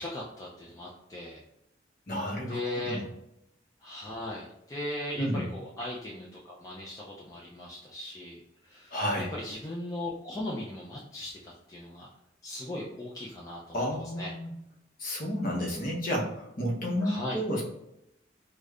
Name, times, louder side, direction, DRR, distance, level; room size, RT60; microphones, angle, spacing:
voice 1, 0.0-1.4 2.5-3.0 3.8-12.1 12.4-14.3 17.0-17.4, left 1 dB, 20° left, -5 dB, 0.4 m, -38 dB
voice 2, 2.1-2.6 2.9-3.1 5.2-5.4 8.9-9.3 13.7-14.5 15.0-17.6, equal, 50° left, -3 dB, 0.8 m, -31 dB
4.9 x 2.1 x 2.4 m, 0.83 s
head